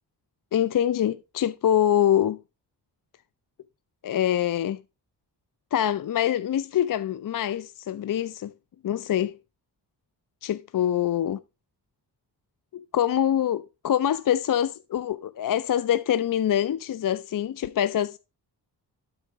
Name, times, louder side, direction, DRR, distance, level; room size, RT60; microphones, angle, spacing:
voice 1, 0.5-2.4 4.0-4.8 5.7-8.5 8.8-9.3 10.4-11.4 12.7-18.2, left 10 dB, 55° left, 0.5 m, -25 dB
12.0 x 4.4 x 5.0 m
wide cardioid pair, 105°, 41 cm